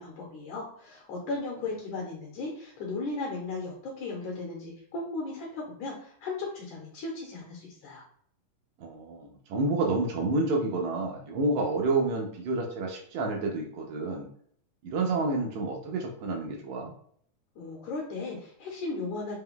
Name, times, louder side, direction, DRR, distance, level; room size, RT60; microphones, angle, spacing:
voice 1, 0.0-8.0 17.6-19.4, left 3 dB, 70° left, -3 dB, 2.3 m, -36 dB
voice 2, 8.8-14.3 14.8-16.9, right 2 dB, 90° right, 0 dB, 1.6 m, -29 dB
5.2 x 2.2 x 3.6 m, 0.62 s
omnidirectional pair, 3.8 m